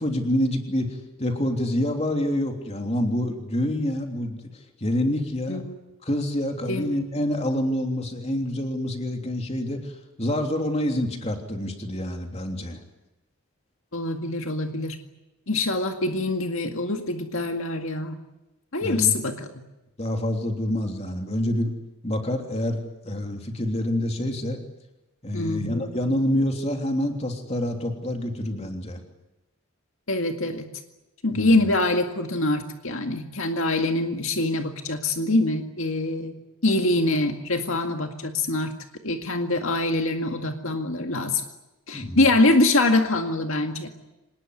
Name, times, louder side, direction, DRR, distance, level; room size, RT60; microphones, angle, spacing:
voice 1, 0.0-4.4 4.8-5.6 6.0-9.9 10.2-12.8 18.8-19.2 20.0-21.7 22.0-22.8 23.0-24.6 25.2-29.0 31.3-31.6 41.9-42.2, left 1 dB, 30° left, 3 dB, 3.3 m, -27 dB
voice 2, 6.7-7.0 13.9-15.0 15.5-18.2 18.7-19.5 25.3-25.9 30.1-30.7 31.2-36.3 36.6-38.7 39.0-41.4 41.9-43.9, left 2 dB, 70° left, 4 dB, 2.0 m, -24 dB
26.0 x 20.0 x 9.8 m, 1.0 s
head